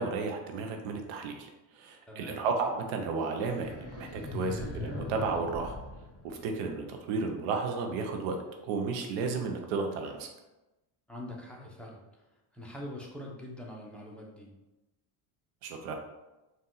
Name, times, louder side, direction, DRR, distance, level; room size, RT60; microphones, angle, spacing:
voice 1, 0.0-1.5 1.7-5.8 6.2-8.4 8.6-10.3 15.6-15.9, right 4 dB, 85° right, 3 dB, 0.8 m, -33 dB
voice 2, 2.1-2.4 11.1-12.0 12.5-14.5, left 1 dB, ahead, -3 dB, 0.8 m, -43 dB
sound 1, 3.4-6.9, left 1 dB, 30° left, 1.1 m, -40 dB
4.1 x 2.6 x 3.8 m, 1.0 s
cardioid pair, 110°, 50 cm